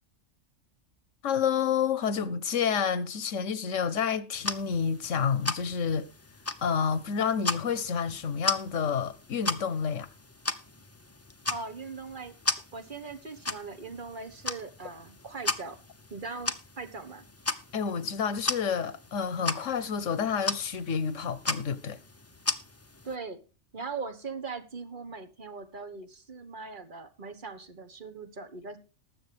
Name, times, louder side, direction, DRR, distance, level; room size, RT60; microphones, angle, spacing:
voice 1, 1.2-6.1 6.6-10.1 17.7-22.0, left 7 dB, 80° left, 1.3 m, -29 dB
sound 1, 4.3-23.1, left 3 dB, 15° left, 0.6 m, -37 dB
voice 2, 11.5-12.3 12.7-15.8 16.1-17.3 23.0-23.4 23.7-28.8, right 4 dB, 40° right, 1.4 m, -40 dB
19.5 x 7.4 x 3.4 m
omnidirectional pair, 1.3 m